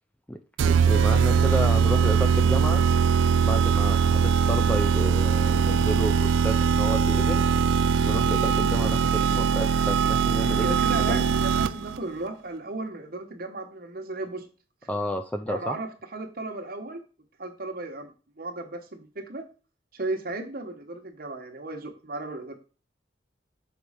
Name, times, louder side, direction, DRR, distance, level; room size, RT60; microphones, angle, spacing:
sound 1, 0.6-12.0, right 6 dB, 80° right, 0.3 m, -21 dB
voice 1, 0.7-2.8 3.4-7.4 8.0-11.2 14.9-15.8, equal, 10° left, 7 dB, 0.4 m, -31 dB
voice 2, 10.6-14.5 15.5-17.0 17.4-18.1 18.4-19.4 19.9-22.6, right 2 dB, 50° right, 4 dB, 1.1 m, -35 dB
6.1 x 4.2 x 5.0 m, 0.36 s
head